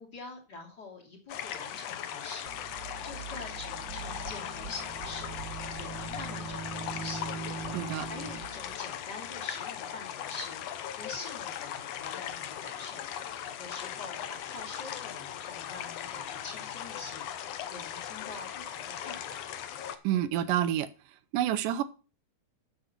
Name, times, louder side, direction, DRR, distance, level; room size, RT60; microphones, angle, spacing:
voice 1, 0.0-2.5 3.0-5.3 5.8-7.3 8.0-10.6 10.9-13.0 13.6-17.2 17.7-19.5, left 3 dB, 30° left, -2 dB, 3.1 m, -45 dB
sound 1, 1.3-20.0, left 10 dB, 70° left, 1.6 m, -39 dB
sound 2, 2.5-8.8, right 5 dB, 45° right, 1.6 m, -41 dB
voice 2, 7.7-8.1 20.0-20.9 21.3-21.8, right 11 dB, 90° right, 13 dB, 2.4 m, -28 dB
8.2 x 7.9 x 5.9 m, 0.34 s
omnidirectional pair, 3.7 m